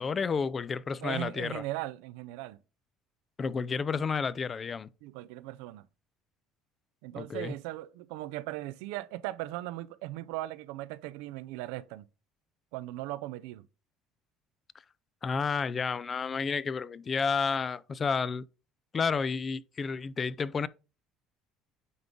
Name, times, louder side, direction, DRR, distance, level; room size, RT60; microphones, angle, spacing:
voice 1, 0.0-1.6 3.4-4.9 7.2-7.5 15.2-18.5 18.9-20.7, left 5 dB, 35° left, 0.4 m, -31 dB
voice 2, 1.0-2.6 5.0-5.9 7.0-12.0 12.7-13.6, right 16 dB, 85° right, 0.4 m, -38 dB
9.3 x 3.8 x 3.6 m
supercardioid pair, 95°, 0 cm